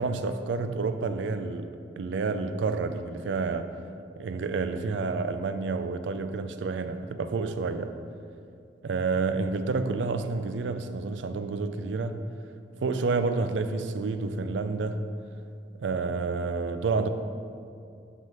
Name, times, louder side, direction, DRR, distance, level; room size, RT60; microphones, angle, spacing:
voice 1, 0.0-1.7 2.0-3.7 4.2-7.9 8.8-12.2 12.8-15.0 15.8-17.1, right 4 dB, 85° right, 9 dB, 0.4 m, -29 dB
6.1 x 3.6 x 5.6 m, 2.4 s
head